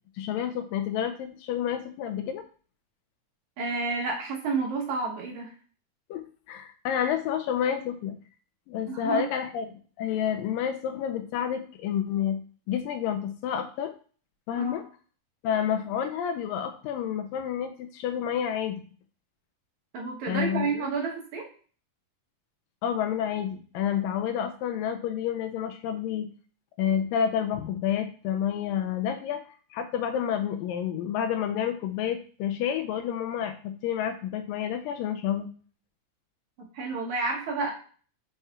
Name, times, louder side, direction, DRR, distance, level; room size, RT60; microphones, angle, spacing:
voice 1, 0.2-2.4 6.1-8.1 8.7-9.7 10.0-12.4 12.7-13.9 14.5-14.8 15.4-18.8 20.3-20.8 22.8-26.3 26.8-29.4 29.7-35.5, left 9 dB, 80° left, 8 dB, 2.1 m, -29 dB
voice 2, 3.6-5.5 8.9-9.3 14.6-14.8 19.9-21.5 36.6-37.7, right 4 dB, 65° right, 0 dB, 2.1 m, -30 dB
5.5 x 5.5 x 3.5 m, 0.41 s
omnidirectional pair, 4.2 m